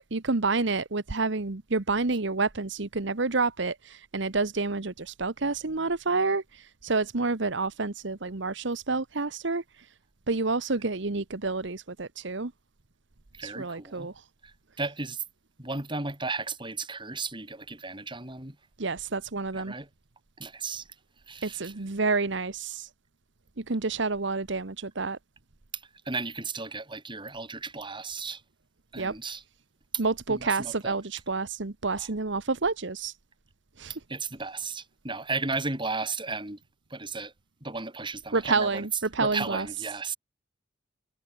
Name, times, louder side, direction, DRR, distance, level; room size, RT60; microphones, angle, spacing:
voice 1, 0.0-9.9 10.3-12.5 13.4-14.2 18.8-19.7 21.4-22.9 23.6-25.2 29.0-29.1 30.0-33.1 33.8-33.9 38.3-39.7, right 3 dB, 65° right, 1.2 m, -29 dB
voice 2, 13.3-14.1 14.4-15.2 15.6-18.6 19.5-19.9 20.4-20.9 21.3-21.7 26.1-28.4 28.9-29.4 30.3-30.9 32.0-32.1 34.1-36.6 36.9-37.3 37.6-38.9 39.2-40.2, right 3 dB, 25° right, 5.2 m, -34 dB
head